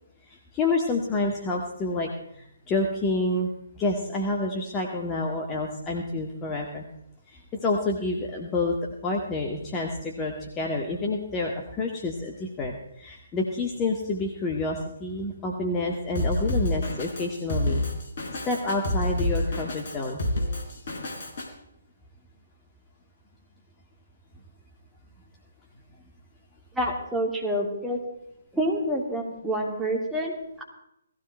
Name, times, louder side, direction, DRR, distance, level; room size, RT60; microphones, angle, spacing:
voice 1, 0.3-6.9 7.3-8.8 9.0-17.8 18.5-20.2 20.7-20.8, left 2 dB, 20° left, 0 dB, 1.9 m, -28 dB
Drum kit, 16.1-21.5, left 1 dB, 50° left, 4.0 m, -28 dB
voice 2, 26.7-28.0 28.5-30.6, equal, 5° right, -2 dB, 3.1 m, -28 dB
19.0 x 15.5 x 4.5 m, 0.78 s
figure-of-eight pair, 135°, 0 cm